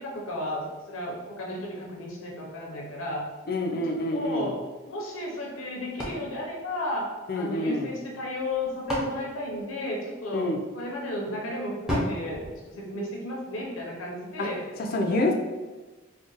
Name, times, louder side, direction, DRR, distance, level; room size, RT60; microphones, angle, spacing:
voice 1, 0.0-3.3 3.7-3.8 4.1-4.6 4.9-10.5 10.7-12.4 12.8-14.6 15.2-15.3, left 1 dB, 90° left, -1 dB, 0.7 m, -34 dB
voice 2, 3.5-4.5 7.3-7.9 10.3-10.6 14.4-14.5 14.8-15.3, left 2 dB, 45° left, 2 dB, 0.4 m, -27 dB
sound 1, 6.0-7.5 8.4-10.4 11.9-13.5, equal, 5° right, 0.6 m, -34 dB
2.4 x 2.2 x 3.8 m, 1.2 s
head